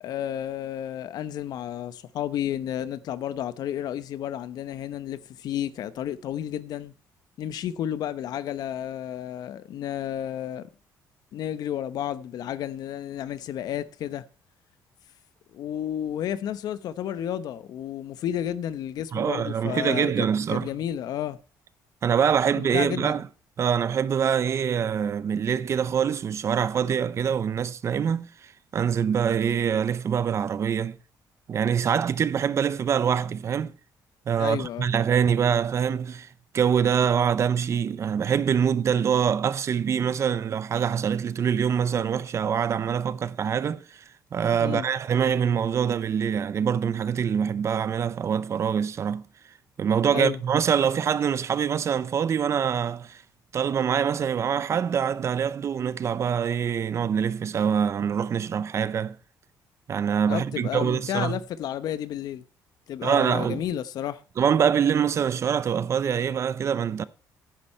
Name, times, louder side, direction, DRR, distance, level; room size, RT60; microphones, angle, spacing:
voice 1, 0.0-6.9 7.4-10.7 11.3-14.2 15.5-21.4 22.6-23.2 34.4-34.9 44.6-44.9 50.1-50.4 60.3-62.4 62.9-64.2, left 10 dB, 70° left, 0.9 m, -32 dB
voice 2, 19.1-20.7 22.0-23.3 23.6-28.3 28.7-31.0 31.5-33.7 34.3-36.3 36.5-44.0 44.3-49.2 49.8-53.2 53.5-59.2 59.9-61.4 63.0-63.6 64.4-67.0, right 7 dB, 45° right, 0.6 m, -24 dB
10.5 x 9.9 x 4.3 m
cardioid pair, 125°, 7 cm